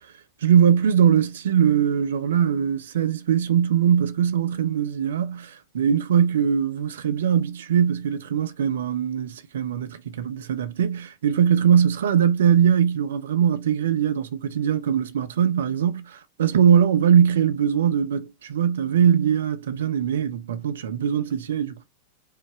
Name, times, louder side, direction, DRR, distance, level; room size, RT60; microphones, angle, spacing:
voice 1, 0.4-21.9, right 8 dB, 60° right, 0.7 m, -21 dB
5.0 x 2.2 x 4.4 m
figure-of-eight pair, 90°, 0 cm